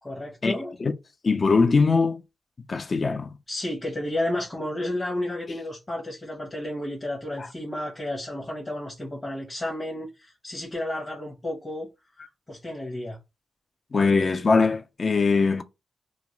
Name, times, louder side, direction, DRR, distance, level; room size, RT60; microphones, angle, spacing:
voice 1, 0.0-0.7 3.5-11.9 12.5-13.2, left 1 dB, 30° left, 0.9 m, -32 dB
voice 2, 1.2-2.2 2.7-3.3 7.4-7.5 13.9-15.6, left 4 dB, 45° left, 0.4 m, -21 dB
2.4 x 2.0 x 2.9 m
cardioid pair, 75°, 0 cm